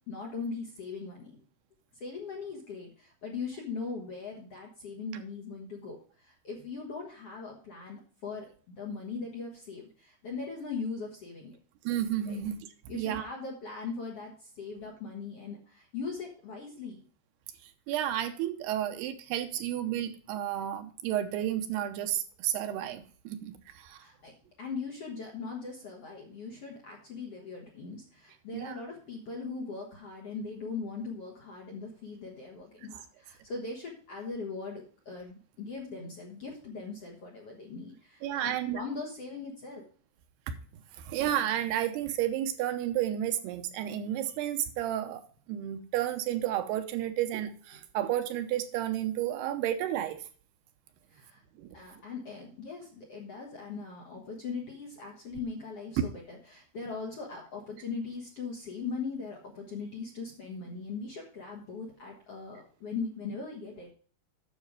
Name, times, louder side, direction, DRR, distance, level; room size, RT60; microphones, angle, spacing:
voice 1, 0.0-1.4 1.9-11.6 12.3-12.4 12.9-17.0 24.0-24.3 24.6-39.8 51.1-51.4 51.7-63.9, left 4 dB, 55° left, -1 dB, 1.8 m, -40 dB
voice 2, 11.8-12.6 12.9-13.3 17.9-24.0 28.5-28.8 38.2-38.8 41.0-45.2 45.5-50.2 51.6-51.8, right 11 dB, 80° right, 7 dB, 2.9 m, -32 dB
9.4 x 6.6 x 4.8 m, 0.42 s
omnidirectional pair, 4.8 m